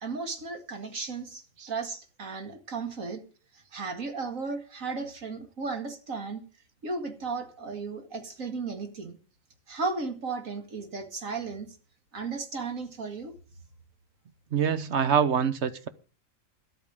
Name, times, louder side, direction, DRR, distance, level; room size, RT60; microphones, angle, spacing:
voice 1, 0.0-3.2 3.7-6.4 6.8-9.2 9.7-11.7 12.1-13.3, right 4 dB, 85° right, 2.5 m, -35 dB
voice 2, 14.5-15.9, right 7 dB, 60° right, 1.2 m, -25 dB
12.5 x 8.8 x 6.4 m
omnidirectional pair, 1.4 m